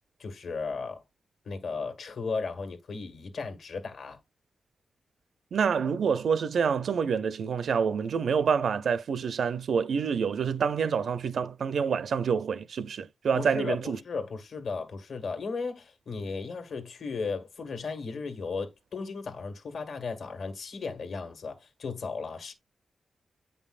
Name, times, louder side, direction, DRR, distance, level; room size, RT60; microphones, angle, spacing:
voice 1, 0.2-1.0 1.4-4.2 13.3-22.5, left 4 dB, 65° left, 1.6 m, -35 dB
voice 2, 5.5-14.0, right 6 dB, 65° right, 0.5 m, -27 dB
8.7 x 5.4 x 2.4 m
wide cardioid pair, 175°, 0 cm